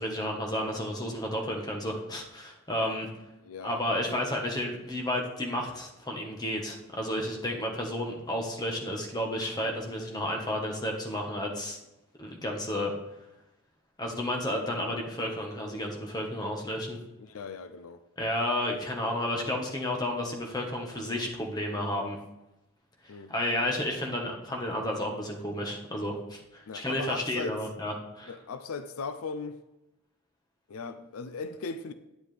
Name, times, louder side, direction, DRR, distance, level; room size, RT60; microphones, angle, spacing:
voice 1, 0.0-3.1 3.6-11.8 12.2-12.9 14.0-17.0 18.2-22.2 23.0-28.3, left 1 dB, 20° left, 1.3 m, -32 dB
voice 2, 3.4-4.3 4.7-4.8 17.2-18.0 23.1-23.3 26.7-27.6 28.3-29.6 30.7-31.9, left 4 dB, 80° left, 0.5 m, -38 dB
9.9 x 9.3 x 3.4 m
head